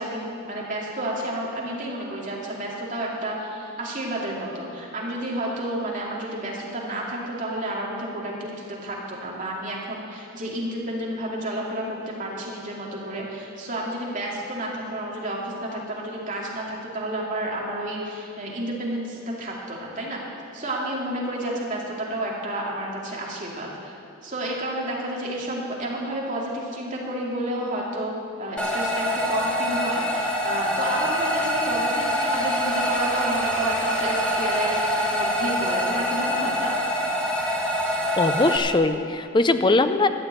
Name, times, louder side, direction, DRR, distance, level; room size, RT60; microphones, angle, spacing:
voice 1, 0.0-20.2 20.5-23.9 24.2-28.1 28.4-36.8, right 1 dB, 40° right, -3 dB, 2.5 m, -30 dB
sound 1, 28.6-38.6, equal, 5° left, 1.3 m, -25 dB
voice 2, 38.2-40.1, left 2 dB, 20° left, 10 dB, 0.5 m, -20 dB
13.0 x 7.0 x 8.9 m, 2.7 s
head